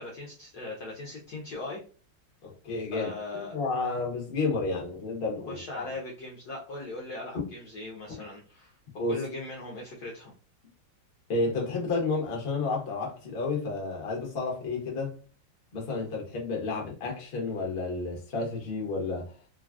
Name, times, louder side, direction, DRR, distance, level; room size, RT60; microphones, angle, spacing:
voice 1, 0.0-1.8 2.9-3.5 5.5-8.7 9.0-10.3, left 2 dB, 70° left, 0.9 m, -39 dB
voice 2, 2.4-5.9 9.0-9.2 11.3-15.1 15.7-19.3, left 3 dB, 50° left, 0.7 m, -31 dB
3.2 x 2.3 x 2.3 m
omnidirectional pair, 2.3 m